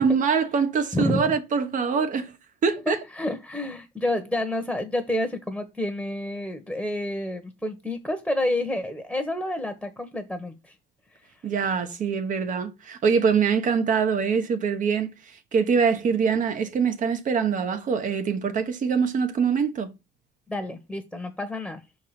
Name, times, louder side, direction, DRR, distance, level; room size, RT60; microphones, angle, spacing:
voice 1, 0.0-2.3 2.6-3.0 11.4-19.9, right 6 dB, 50° right, 1.2 m, -24 dB
voice 2, 0.9-1.3 2.9-10.7 20.5-21.8, left 1 dB, ahead, 1.2 m, -29 dB
5.8 x 4.7 x 5.9 m
cardioid pair, 110°, 17 cm